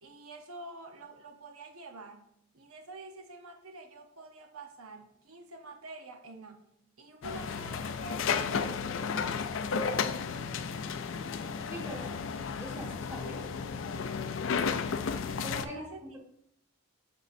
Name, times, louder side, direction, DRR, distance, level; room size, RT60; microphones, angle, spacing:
voice 1, 0.0-2.3 2.5-6.7 7.0-8.9 14.8-16.2, right 2 dB, 85° right, 5 dB, 0.8 m, -48 dB
sound 1, 7.2-15.6, left 5 dB, 60° left, 0.4 m, -33 dB
voice 2, 11.7-13.5 15.4-16.2, equal, 15° right, -2 dB, 1.5 m, -43 dB
7.3 x 6.7 x 2.6 m, 0.71 s
head